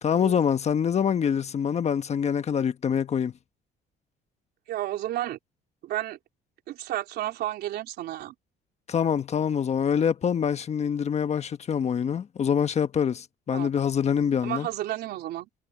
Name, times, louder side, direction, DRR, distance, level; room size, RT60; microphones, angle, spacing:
voice 1, 0.0-3.3 8.9-14.7, left 7 dB, 40° left, 1.2 m, -25 dB
voice 2, 4.7-5.4 5.8-6.2 6.7-8.3 13.5-13.7 14.4-15.5, right 14 dB, 75° right, 3.9 m, -32 dB
cardioid pair, 110°, 17 cm